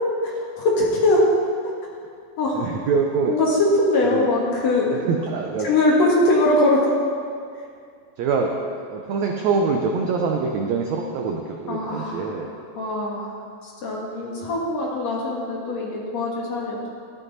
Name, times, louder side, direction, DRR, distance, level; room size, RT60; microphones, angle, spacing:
voice 1, 0.2-1.3 2.4-2.6 3.3-5.0 5.6-6.9 11.7-12.3 12.8-13.3 13.6-16.9, left 2 dB, 55° left, -3 dB, 2.5 m, -21 dB
voice 2, 2.5-3.4 4.0-4.3 4.9-5.7 8.2-8.5 8.9-12.5, right 5 dB, 85° right, 1 dB, 1.5 m, -24 dB
13.5 x 11.0 x 4.1 m, 2.2 s
omnidirectional pair, 4.2 m